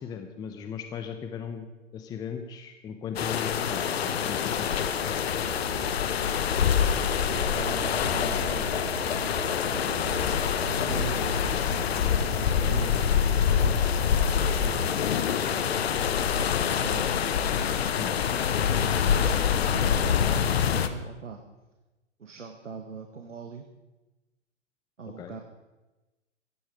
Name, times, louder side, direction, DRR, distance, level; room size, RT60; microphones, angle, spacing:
voice 1, 0.0-4.8 17.9-18.1 25.2-25.4, left 7 dB, 10° left, 7 dB, 0.7 m, -38 dB
sound 1, 3.2-20.9, left 8 dB, 55° left, 1.2 m, -26 dB
sound 2, 4.9-14.8, right 3 dB, 30° right, 3.9 m, -38 dB
voice 2, 7.5-10.2 10.9-11.3 12.6-14.0 14.3-17.2 19.1-21.4 22.2-23.7 25.0-25.4, right 5 dB, 75° right, 5 dB, 1.7 m, -42 dB
16.0 x 15.0 x 5.0 m, 1.1 s
figure-of-eight pair, 120°, 37 cm